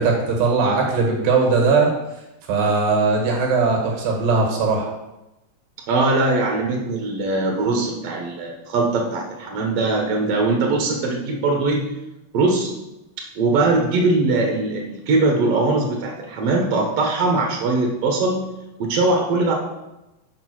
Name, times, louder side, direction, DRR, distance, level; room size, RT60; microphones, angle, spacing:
voice 1, 0.0-1.9 2.5-4.9, right 4 dB, 85° right, 0 dB, 3.1 m, -19 dB
voice 2, 5.9-11.9 12.3-12.7 13.2-18.5 18.8-19.5, right 3 dB, 70° right, 1 dB, 1.5 m, -21 dB
5.9 x 5.1 x 6.2 m, 0.96 s
omnidirectional pair, 3.9 m